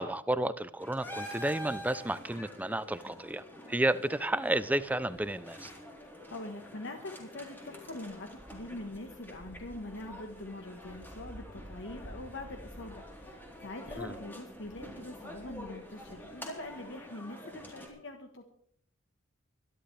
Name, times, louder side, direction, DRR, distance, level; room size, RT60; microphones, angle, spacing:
voice 1, 0.0-5.7 14.0-14.2, right 1 dB, 10° right, 14 dB, 0.5 m, -32 dB
sound 1, 0.8-17.9, equal, 10° left, 3.7 m, -47 dB
voice 2, 6.3-18.5, left 2 dB, 65° left, 5 dB, 1.4 m, -43 dB
24.5 x 11.5 x 3.4 m, 0.69 s
head